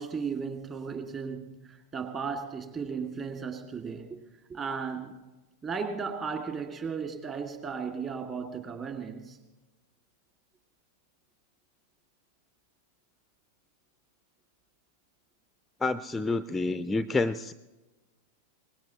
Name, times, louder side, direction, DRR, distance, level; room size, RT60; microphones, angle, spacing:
voice 1, 0.0-4.2 4.5-5.2 5.6-9.4, right 5 dB, 25° right, 5 dB, 2.2 m, -35 dB
voice 2, 15.8-17.5, left 3 dB, 10° left, 14 dB, 0.4 m, -28 dB
24.0 x 20.0 x 3.0 m, 1.1 s
figure-of-eight pair, 90°, 0 cm